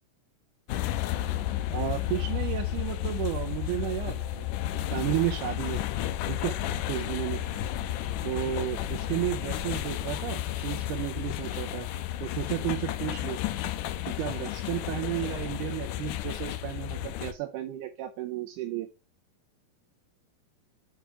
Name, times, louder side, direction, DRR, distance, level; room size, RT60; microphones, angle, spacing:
sound 1, 0.7-17.3, left 12 dB, 85° left, 1.9 m, -32 dB
voice 1, 1.7-4.6 4.9-5.8 6.2-6.6 6.9-7.4 8.2-11.9 12.2-13.4 14.1-18.9, right 14 dB, 80° right, 7 dB, 1.9 m, -33 dB
6.8 x 4.6 x 4.9 m, 0.30 s
omnidirectional pair, 4.1 m